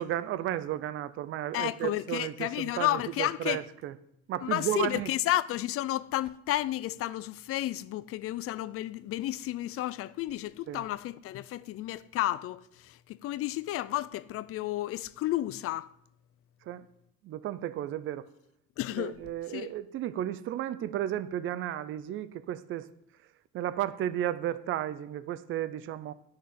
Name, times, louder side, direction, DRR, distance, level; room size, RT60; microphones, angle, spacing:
voice 1, 0.0-3.9 4.3-5.1 10.7-10.8 16.6-16.9 17.2-18.3 19.0-22.9 23.5-26.1, right 12 dB, 45° right, 0.6 m, -33 dB
voice 2, 1.5-3.6 4.4-15.9 18.8-19.2 19.5-19.7, left 14 dB, 50° left, 0.5 m, -32 dB
11.5 x 6.6 x 9.3 m
cardioid pair, 175°, 29 cm